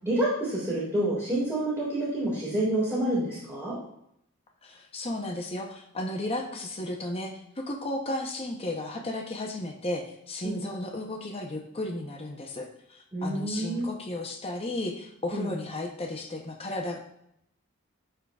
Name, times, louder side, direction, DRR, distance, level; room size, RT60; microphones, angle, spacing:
voice 1, 0.0-3.8 10.4-10.6 13.1-13.8 15.3-15.5, right 1 dB, 10° right, -9 dB, 1.8 m, -28 dB
voice 2, 4.6-17.0, left 1 dB, 25° left, 1 dB, 0.7 m, -34 dB
11.0 x 3.8 x 2.3 m, 0.75 s
head